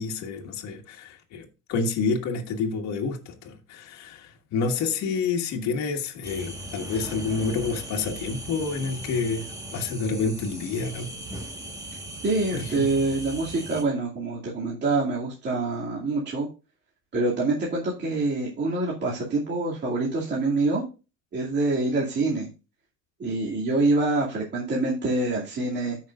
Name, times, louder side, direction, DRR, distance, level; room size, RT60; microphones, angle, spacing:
voice 1, 0.0-11.1 12.5-12.9, left 4 dB, 55° left, 1.8 m, -29 dB
sound 1, 6.2-13.8, right 1 dB, 10° right, 1.4 m, -38 dB
voice 2, 12.2-16.5 17.1-20.8 21.3-22.5 23.2-26.0, right 2 dB, 30° right, 2.4 m, -26 dB
13.5 x 5.9 x 2.4 m
cardioid pair, 125°, 33 cm